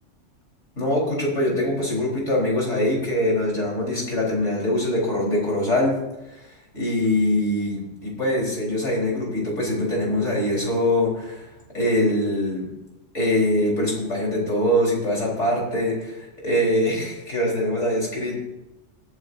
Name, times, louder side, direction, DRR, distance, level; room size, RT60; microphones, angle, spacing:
voice 1, 0.8-6.0 6.3-6.5 6.7-11.5 11.7-12.7 13.1-18.4, left 1 dB, 70° left, -3 dB, 4.7 m, -23 dB
19.5 x 11.0 x 2.7 m, 0.96 s
omnidirectional pair, 1.3 m